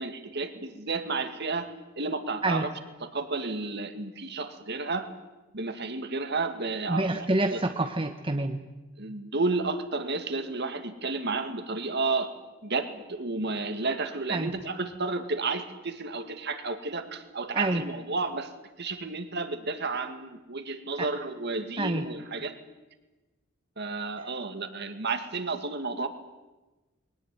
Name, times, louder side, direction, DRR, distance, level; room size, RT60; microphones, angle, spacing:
voice 1, 0.0-2.7 3.0-5.1 5.5-7.6 9.0-12.3 12.6-18.5 18.8-22.5 23.8-26.1, right 3 dB, 55° right, 8 dB, 2.2 m, -32 dB
voice 2, 6.9-8.6 14.3-14.5 17.5-17.8 21.0-21.1 21.8-22.0, right 2 dB, 25° right, 6 dB, 1.0 m, -27 dB
22.0 x 18.5 x 9.4 m, 1.2 s
head